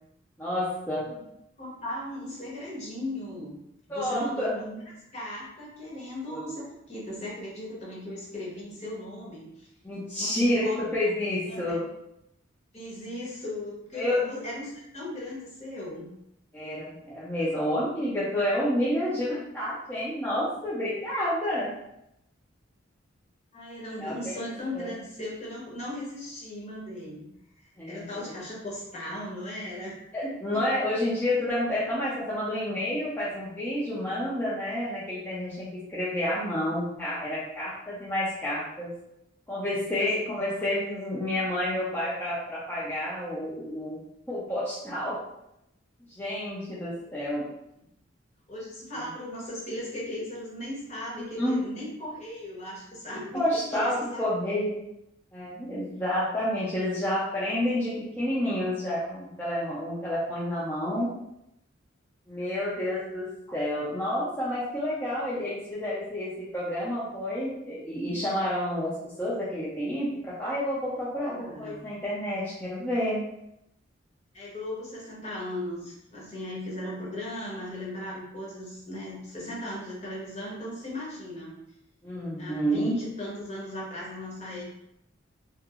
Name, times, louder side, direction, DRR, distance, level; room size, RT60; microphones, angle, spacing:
voice 1, 0.4-1.0 3.9-4.5 6.3-6.4 9.8-11.8 14.0-14.1 16.5-21.7 24.0-24.4 24.7-24.9 27.8-28.0 30.1-38.9 39.5-44.0 44.3-45.2 46.2-47.5 49.0-49.1 51.4-51.6 53.1-54.8 55.3-61.1 62.3-73.2 82.0-83.0, left 1 dB, 10° left, -9 dB, 0.4 m, -29 dB
voice 2, 1.6-3.6 3.9-4.8 5.1-9.7 10.2-10.8 11.5-11.6 12.7-16.1 23.5-27.3 27.6-31.0 40.0-40.2 40.6-40.7 46.9-47.3 48.5-54.2 71.3-71.9 74.3-81.5 82.4-84.6, left 1 dB, 35° left, -5 dB, 0.8 m, -37 dB
2.8 x 2.4 x 2.3 m, 0.82 s
head